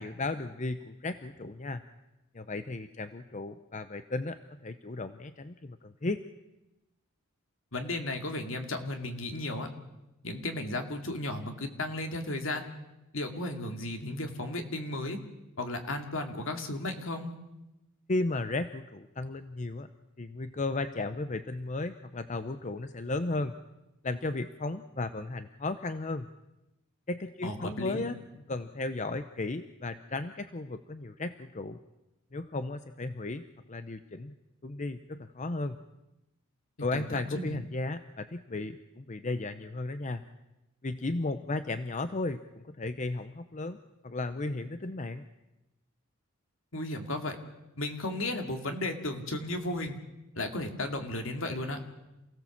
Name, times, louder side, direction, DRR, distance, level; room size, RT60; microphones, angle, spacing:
voice 1, 0.0-1.8 2.3-6.2 18.1-19.9 20.2-23.5 24.0-26.3 27.1-28.2 28.5-31.8 32.3-34.3 34.6-35.8 36.8-40.2 40.8-43.8 44.0-45.2, left 2 dB, 35° left, 10 dB, 0.7 m, -35 dB
voice 2, 7.7-9.7 10.2-12.7 13.1-15.2 15.6-17.3 27.4-28.1 36.9-37.5 46.7-47.4 47.8-50.0 50.3-51.8, left 2 dB, 65° left, 5 dB, 2.5 m, -34 dB
28.0 x 16.5 x 7.3 m, 0.97 s
head